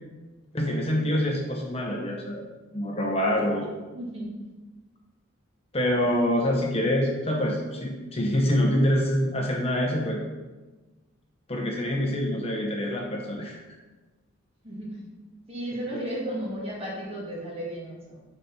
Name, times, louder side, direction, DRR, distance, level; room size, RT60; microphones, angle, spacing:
voice 1, 0.5-2.5 2.7-3.7 5.7-10.2 11.5-13.6 15.9-16.0, left 1 dB, 30° left, 0 dB, 0.9 m, -26 dB
voice 2, 3.9-4.3 14.6-15.0 15.5-18.2, right 1 dB, 30° right, -4 dB, 2.0 m, -34 dB
6.9 x 4.2 x 5.7 m, 1.2 s
head